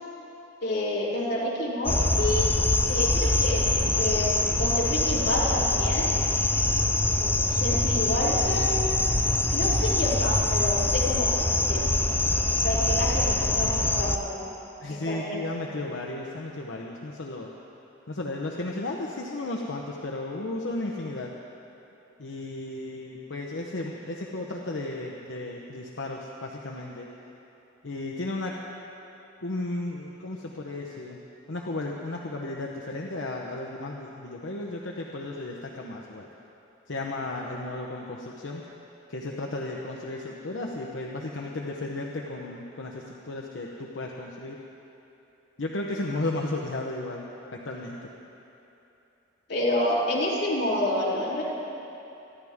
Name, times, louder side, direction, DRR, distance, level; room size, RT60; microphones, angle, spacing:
voice 1, 0.6-2.5 2.9-6.1 7.5-8.7 9.5-11.3 11.7-11.8 12.6-14.4 14.9-15.4 49.5-51.4, left 1 dB, 60° left, -7 dB, 3.4 m, -28 dB
sound 1, 1.9-14.2, left 2 dB, 10° left, 0.5 m, -24 dB
voice 2, 14.8-17.5 18.1-21.3 22.2-27.1 27.8-28.5 29.4-31.2 31.5-36.3 36.9-38.6 39.1-44.6 45.6-47.2 47.5-48.0, left 2 dB, 80° left, -1 dB, 1.0 m, -34 dB
26.5 x 11.0 x 3.6 m, 3.0 s
head